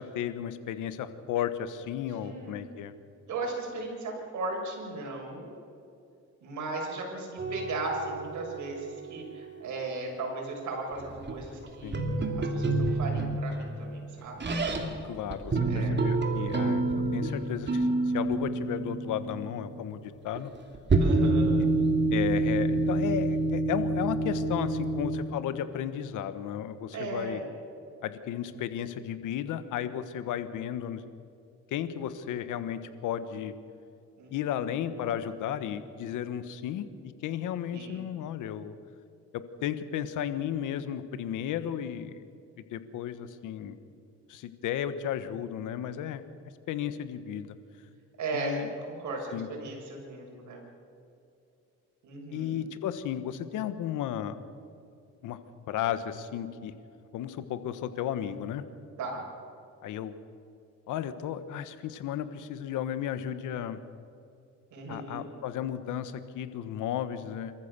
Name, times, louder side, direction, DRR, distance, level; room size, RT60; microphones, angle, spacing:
voice 1, 0.0-2.9 11.8-12.0 15.0-20.5 22.1-27.4 28.0-31.0 31.7-33.5 34.3-38.7 39.3-42.2 42.6-43.8 44.3-46.2 46.7-47.5 48.3-48.7 49.3-49.5 52.3-54.4 55.2-55.4 55.7-56.7 57.1-58.6 59.8-60.1 60.9-63.8 64.9-67.5, left 10 dB, 85° left, 11 dB, 1.3 m, -34 dB
voice 2, 2.2-2.7 3.3-5.5 6.4-12.1 12.4-14.4 15.7-16.0 21.0-21.6 26.9-27.5 34.2-34.7 37.7-38.1 48.2-50.6 52.0-52.6 59.0-59.2 64.7-65.2, right 2 dB, 75° right, 0 dB, 6.7 m, -37 dB
sound 1, 7.4-10.0 11.0-15.0 15.3-19.8 20.4-20.5 20.7-25.2, right 2 dB, 35° right, 3.0 m, -28 dB
26.5 x 14.5 x 6.8 m, 2.6 s
cardioid pair, 90°, 30 cm